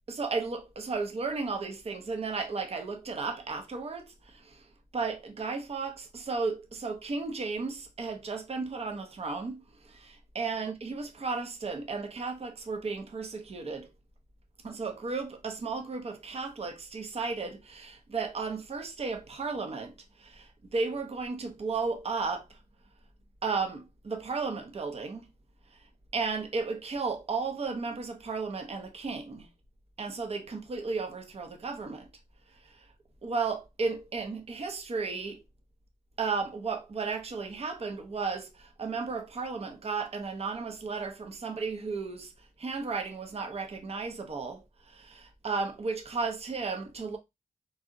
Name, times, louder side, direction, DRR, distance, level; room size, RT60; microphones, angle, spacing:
voice 1, 0.1-4.7 4.9-13.9 14.6-22.6 23.4-25.3 25.7-25.8 26.1-29.5 30.0-32.1 32.5-32.9 33.2-35.4 36.2-47.2, right 4 dB, 45° right, 0.6 m, -34 dB
2.6 x 2.0 x 3.7 m
cardioid pair, 75°, 14 cm